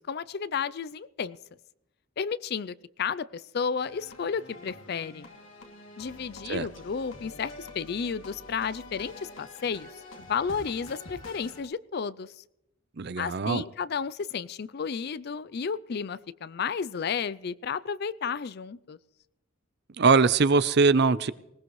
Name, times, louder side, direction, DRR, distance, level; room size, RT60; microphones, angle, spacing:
voice 1, 0.0-1.4 2.2-5.3 6.0-9.9 10.2-12.4 13.2-19.0, left 6 dB, 55° left, 0.4 m, -32 dB
sound 1, 3.8-11.6, left 2 dB, 85° left, 2.6 m, -47 dB
voice 2, 13.0-13.6 20.0-21.3, right 4 dB, 55° right, 0.6 m, -22 dB
20.0 x 18.5 x 3.2 m
head